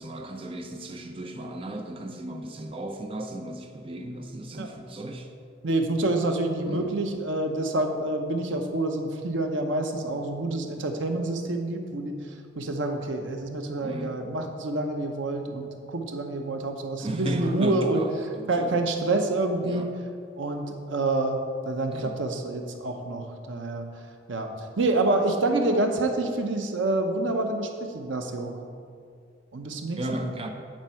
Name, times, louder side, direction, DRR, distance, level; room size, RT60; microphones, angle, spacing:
voice 1, 0.0-5.3 6.6-6.9 13.8-14.1 17.0-18.8 19.6-19.9 21.9-22.2 30.0-30.5, right 1 dB, 30° right, 4 dB, 0.5 m, -35 dB
voice 2, 5.6-12.2 12.6-18.0 18.5-19.9 20.4-21.4 21.7-23.9 24.3-28.6 29.5-30.3, right 2 dB, 90° right, 4 dB, 0.8 m, -27 dB
9.1 x 4.5 x 5.7 m, 2.2 s
head